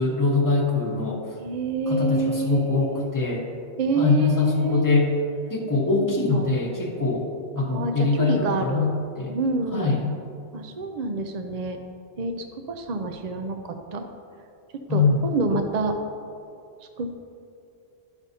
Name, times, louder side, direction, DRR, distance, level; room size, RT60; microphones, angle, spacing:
voice 1, 0.0-1.2 1.9-3.5 4.0-5.1 5.5-7.3 7.6-9.4 9.7-10.1 14.9-15.1, left 3 dB, 20° left, -1 dB, 0.9 m, -23 dB
voice 2, 1.4-3.1 3.8-4.9 6.0-6.5 7.6-8.9 9.3-9.9 10.5-11.8 12.2-12.3 12.7-14.1 14.9-16.0 17.0-17.1, right 3 dB, 55° right, 5 dB, 0.5 m, -27 dB
11.5 x 6.1 x 2.7 m, 2.5 s
omnidirectional pair, 1.2 m